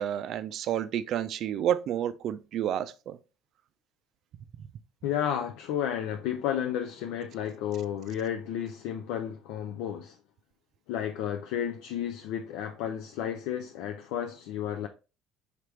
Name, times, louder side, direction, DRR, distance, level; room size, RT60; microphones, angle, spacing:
voice 1, 0.0-3.2, right 10 dB, 55° right, 0.4 m, -30 dB
voice 2, 5.0-10.2 10.9-14.9, left 9 dB, 70° left, 0.4 m, -32 dB
4.9 x 3.3 x 3.1 m
hypercardioid pair, 70°, 0 cm